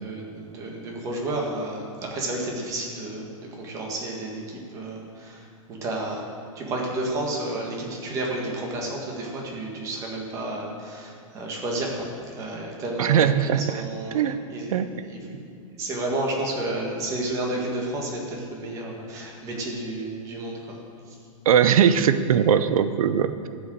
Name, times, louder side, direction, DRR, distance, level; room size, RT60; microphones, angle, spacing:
voice 1, 0.0-6.3 6.6-12.1 12.4-14.2 14.5-15.2 15.7-20.8, right 2 dB, 20° right, -1 dB, 1.7 m, -31 dB
voice 2, 13.0-13.8 14.1-14.4 14.7-14.9 21.5-23.5, right 8 dB, 90° right, 12 dB, 0.7 m, -20 dB
13.5 x 6.4 x 7.9 m, 2.3 s
supercardioid pair, 175°, 18 cm